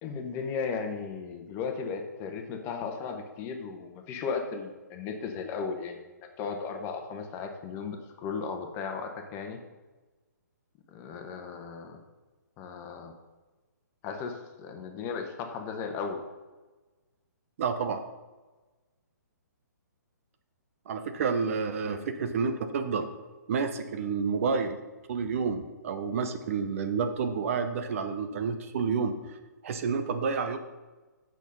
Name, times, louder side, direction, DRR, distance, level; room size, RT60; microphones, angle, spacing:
voice 1, 0.0-6.0 6.4-9.6 10.9-12.0 12.6-13.1 14.0-16.2, left 5 dB, 25° left, 4 dB, 1.2 m, -35 dB
voice 2, 17.6-18.0 20.9-23.1 23.5-24.8 25.1-29.4 29.6-30.6, right 5 dB, 45° right, 8 dB, 0.8 m, -29 dB
8.4 x 6.1 x 5.5 m, 1.2 s
figure-of-eight pair, 130°, 10 cm